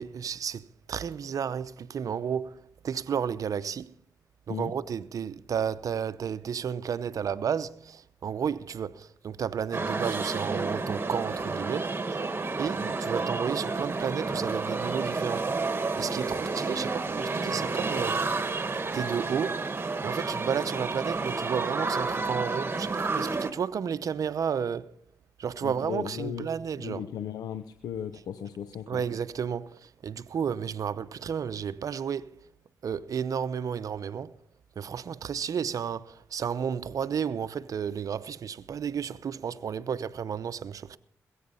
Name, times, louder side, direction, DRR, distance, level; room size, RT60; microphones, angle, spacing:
voice 1, 0.0-3.9 4.5-12.2 12.6-18.3 18.9-19.7 20.0-24.9 25.4-27.1 28.9-32.3 32.8-34.3 34.8-41.0, right 7 dB, 65° right, 0.7 m, -32 dB
sound 1, 9.7-23.5, right 3 dB, 35° right, 1.6 m, -30 dB
voice 2, 25.6-26.5 26.8-29.0, left 9 dB, 80° left, 0.7 m, -36 dB
20.0 x 8.6 x 5.5 m
supercardioid pair, 45°, 6 cm